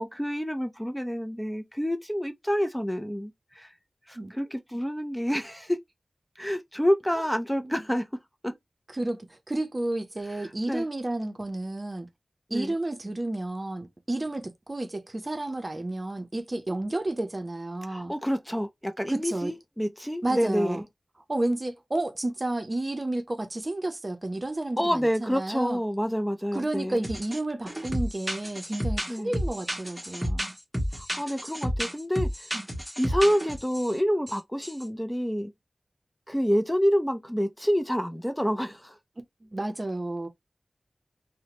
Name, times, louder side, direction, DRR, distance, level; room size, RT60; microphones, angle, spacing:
voice 1, 0.0-3.7 4.1-5.8 6.4-8.1 8.4-8.5 10.4-10.9 12.5-12.7 17.9-20.8 24.8-27.0 29.1-29.3 31.0-32.5 33.0-35.5 36.3-39.0, equal, 10° left, 0.4 m, -28 dB
voice 2, 8.9-12.1 12.5-18.1 19.1-19.5 20.2-20.8 21.3-25.8 26.5-30.6 32.5-32.7 39.4-40.3, right 2 dB, 40° right, 0.6 m, -31 dB
sound 1, 27.0-27.4 27.7-33.9 34.3-34.4 34.6-34.8, equal, 10° right, 1.0 m, -31 dB
2.7 x 2.1 x 2.9 m
wide cardioid pair, 45°, 0 cm